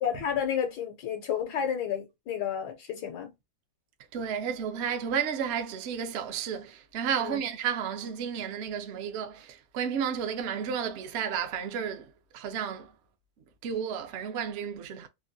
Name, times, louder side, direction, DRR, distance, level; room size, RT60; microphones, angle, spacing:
voice 1, 0.0-3.3 7.2-7.4, left 8 dB, 85° left, 1.2 m, -31 dB
voice 2, 4.1-12.9 13.6-15.1, right 7 dB, 65° right, 0.7 m, -32 dB
3.3 x 2.2 x 2.5 m
omnidirectional pair, 1.7 m